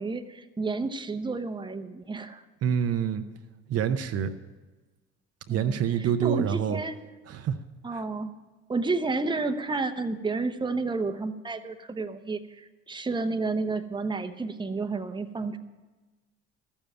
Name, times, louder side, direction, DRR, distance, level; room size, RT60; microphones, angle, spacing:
voice 1, 0.0-2.4 5.5-6.9 7.8-8.3 8.7-15.6, right 3 dB, 15° right, 8 dB, 0.9 m, -31 dB
voice 2, 2.6-3.2 3.7-4.3 5.5-6.8 7.3-7.6 7.9-8.0, right 8 dB, 50° right, 8 dB, 0.8 m, -26 dB
13.5 x 7.2 x 9.1 m, 1.2 s
hypercardioid pair, 60°, 32 cm